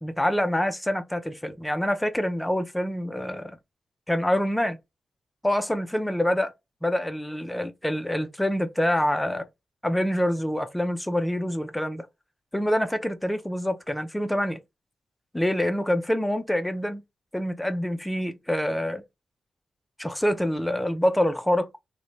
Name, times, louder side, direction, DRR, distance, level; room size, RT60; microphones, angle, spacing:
voice 1, 0.0-3.5 4.1-4.8 5.4-6.5 6.8-9.5 9.8-12.1 12.5-14.6 15.3-17.0 17.3-19.0 20.0-21.7, left 1 dB, 10° left, 0.5 m, -26 dB
2.6 x 2.1 x 3.0 m
cardioid pair, 70°, 0 cm